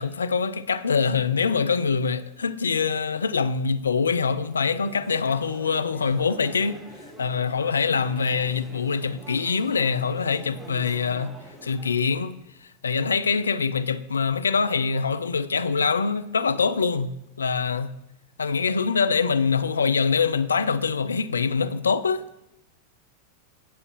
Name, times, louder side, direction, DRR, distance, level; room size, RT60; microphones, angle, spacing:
voice 1, 0.0-6.8 7.2-11.3 11.6-12.4 12.8-17.9 18.4-22.2, left 5 dB, 70° left, 0.3 m, -24 dB
sound 1, 4.4-11.9, right 1 dB, 10° right, 1.0 m, -45 dB
10.0 x 5.4 x 3.0 m
figure-of-eight pair, 90°, 0 cm